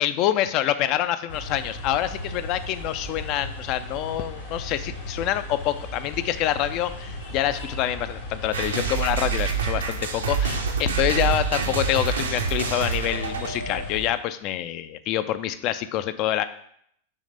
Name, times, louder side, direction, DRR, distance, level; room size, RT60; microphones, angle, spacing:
voice 1, 0.0-16.4, left 12 dB, 40° left, 12 dB, 0.4 m, -26 dB
sound 1, 1.3-14.1, left 1 dB, 65° left, 1.6 m, -37 dB
sound 2, 8.5-13.8, right 5 dB, 70° right, 0.7 m, -27 dB
6.3 x 3.2 x 5.5 m, 0.69 s
figure-of-eight pair, 90°, 0 cm